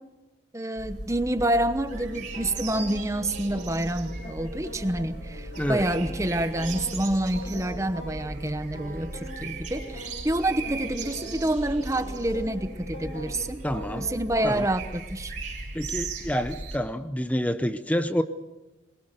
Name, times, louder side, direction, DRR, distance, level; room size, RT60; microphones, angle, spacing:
voice 1, 0.5-13.6 14.0-15.3, right 1 dB, 15° right, 10 dB, 1.0 m, -28 dB
sound 1, 0.8-16.8, right 2 dB, 45° right, 4.7 m, -37 dB
sound 2, 1.9-14.7, equal, 70° left, 6.0 m, -44 dB
voice 2, 13.6-14.1 14.4-14.7 15.7-18.2, equal, 5° left, 11 dB, 0.7 m, -28 dB
22.5 x 21.5 x 6.7 m, 1.0 s
head